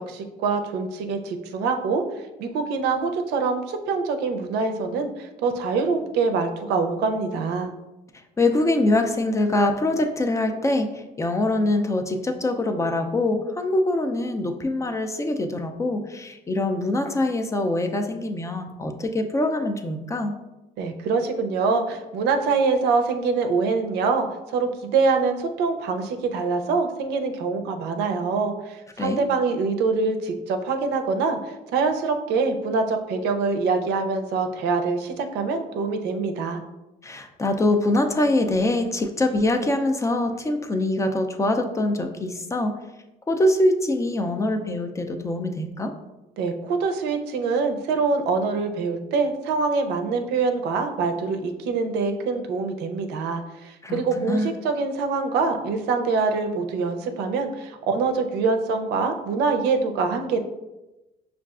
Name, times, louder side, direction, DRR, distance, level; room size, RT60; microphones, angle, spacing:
voice 1, 0.1-2.0 2.4-7.7 20.8-36.6 46.4-60.4, right 4 dB, 80° right, 6 dB, 0.5 m, -24 dB
voice 2, 8.4-20.3 29.0-29.2 37.0-42.7 43.3-45.9 53.8-54.5, left 1 dB, 20° left, 5 dB, 0.3 m, -24 dB
5.5 x 2.4 x 2.3 m, 1.0 s
cardioid pair, 110°, 17 cm